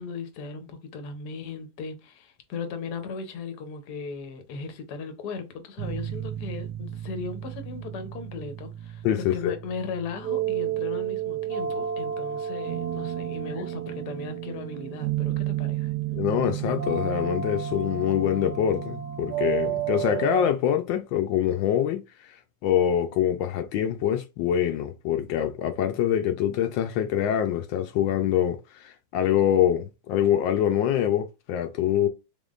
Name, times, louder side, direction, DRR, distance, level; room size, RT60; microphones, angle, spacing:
voice 1, 0.0-9.0 9.3-15.9, left 5 dB, 65° left, 1.3 m, -37 dB
sound 1, 5.8-20.5, right 10 dB, 70° right, 1.0 m, -31 dB
voice 2, 9.0-9.5 16.1-22.4 22.6-32.1, left 10 dB, 85° left, 1.3 m, -25 dB
3.8 x 3.6 x 2.4 m
omnidirectional pair, 2.0 m